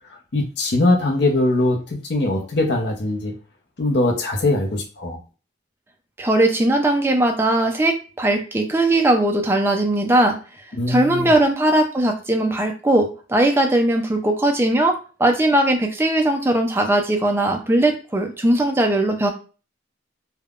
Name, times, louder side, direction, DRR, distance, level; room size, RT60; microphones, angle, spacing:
voice 1, 0.3-3.3 3.8-5.2 10.8-11.3, left 2 dB, 55° left, 2 dB, 0.6 m, -21 dB
voice 2, 6.2-10.4 10.9-19.3, right 1 dB, 10° right, 4 dB, 0.3 m, -19 dB
3.4 x 2.1 x 2.4 m, 0.36 s
head